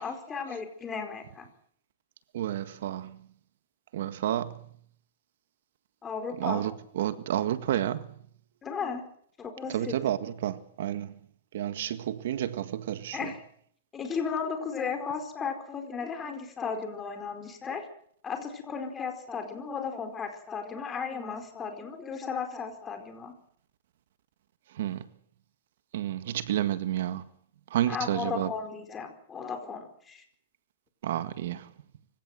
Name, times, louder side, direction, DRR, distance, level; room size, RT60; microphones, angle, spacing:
voice 1, 0.0-1.5 6.0-6.6 8.6-9.0 9.4-10.0 13.1-13.4 13.9-17.9 18.2-23.3 27.9-30.2, left 6 dB, 15° left, 4.6 m, -35 dB
voice 2, 2.3-3.2 3.9-4.5 6.4-8.0 9.7-11.1 11.5-13.2 24.8-25.0 25.9-27.2 27.7-28.5 31.0-31.6, right 11 dB, 70° right, 1.7 m, -30 dB
25.5 x 16.5 x 8.0 m
supercardioid pair, 150°, 0 cm